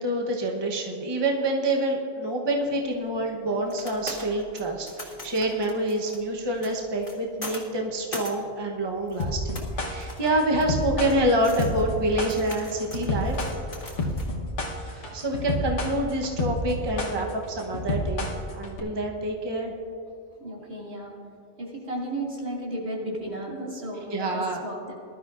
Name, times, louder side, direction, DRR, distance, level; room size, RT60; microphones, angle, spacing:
voice 1, 0.0-13.4 14.9-19.7 24.1-24.6, right 1 dB, 25° right, 0 dB, 1.0 m, -27 dB
sound 1, 2.6-14.3, left 2 dB, 50° left, 2.1 m, -42 dB
sound 2, 9.2-18.8, left 2 dB, 85° left, 1.5 m, -29 dB
voice 2, 20.4-21.1 21.6-24.9, right 1 dB, 65° right, -4 dB, 2.8 m, -34 dB
20.5 x 12.5 x 2.5 m, 2.7 s
omnidirectional pair, 1.2 m